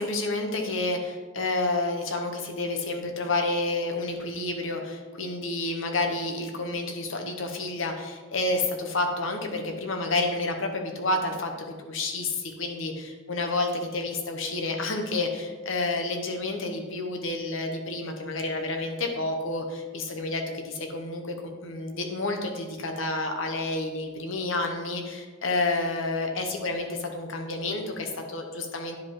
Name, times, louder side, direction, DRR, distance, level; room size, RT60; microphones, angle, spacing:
voice 1, 0.0-21.3 21.6-29.0, left 2 dB, 65° left, 4 dB, 1.0 m, -29 dB
10.0 x 5.1 x 3.7 m, 1.4 s
head